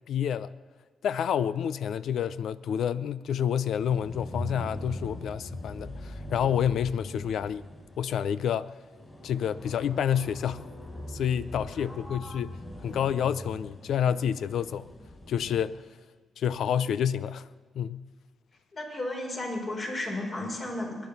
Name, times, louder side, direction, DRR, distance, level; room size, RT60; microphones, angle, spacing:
voice 1, 0.1-0.5 1.0-7.6 8.0-8.7 9.2-10.7 11.1-14.9 15.3-15.8 16.4-17.5 17.7-18.1, left 8 dB, 75° left, 0.5 m, -29 dB
sound 1, 3.8-15.8, left 1 dB, 25° left, 5.3 m, -42 dB
voice 2, 11.7-12.4 18.7-21.0, left 1 dB, 45° left, 5.5 m, -34 dB
23.0 x 10.5 x 5.4 m
cardioid pair, 80°, 0 cm